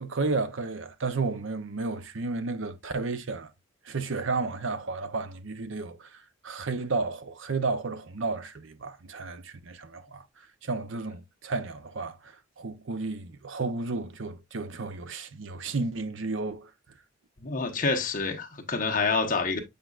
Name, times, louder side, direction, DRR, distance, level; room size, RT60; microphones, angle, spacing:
voice 1, 0.0-3.5 3.8-10.3 10.6-16.7, right 3 dB, 60° right, 0.7 m, -32 dB
voice 2, 17.4-19.6, left 4 dB, 40° left, 1.1 m, -27 dB
7.9 x 5.1 x 2.4 m
head